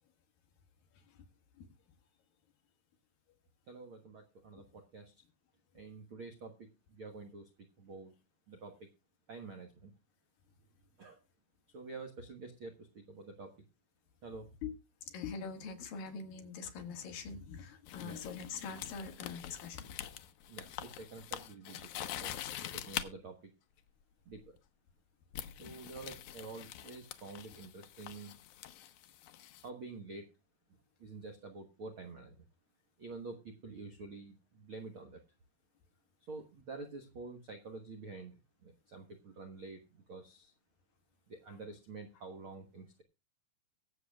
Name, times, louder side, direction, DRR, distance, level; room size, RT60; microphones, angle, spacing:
voice 1, 3.7-5.1 5.7-7.5 7.8-8.1 8.5-8.9 9.3-9.9 11.0-11.2 11.7-13.5 14.2-14.5 18.0-18.2 20.5-22.4 22.6-23.5 24.2-24.5 25.6-28.4 29.6-30.3 31.0-32.4 33.0-35.2 36.2-39.8 40.1-40.5 41.3-43.0, right 3 dB, 85° right, 5 dB, 1.1 m, -48 dB
voice 2, 15.1-19.9, left 5 dB, 65° left, 6 dB, 3.2 m, -43 dB
sound 1, 17.9-23.1 24.3-24.6 25.3-29.7, left 12 dB, 85° left, 1.7 m, -45 dB
23.5 x 7.9 x 2.3 m, 0.27 s
omnidirectional pair, 4.6 m